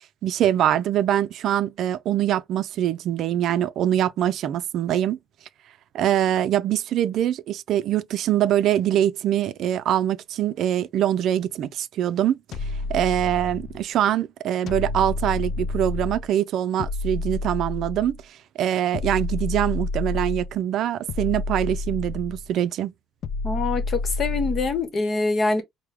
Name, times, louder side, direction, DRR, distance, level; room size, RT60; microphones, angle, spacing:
voice 1, 0.2-5.2 5.9-12.4 12.9-22.9, right 11 dB, 65° right, 0.4 m, -23 dB
sound 1, 12.5-13.8 14.7-16.3 16.8-18.2 18.9-20.6 21.1-22.5 23.2-24.8, left 3 dB, 55° left, 0.4 m, -29 dB
voice 2, 23.4-25.6, left 3 dB, 40° left, 1.0 m, -24 dB
4.6 x 2.1 x 3.2 m
cardioid pair, 135°, 0 cm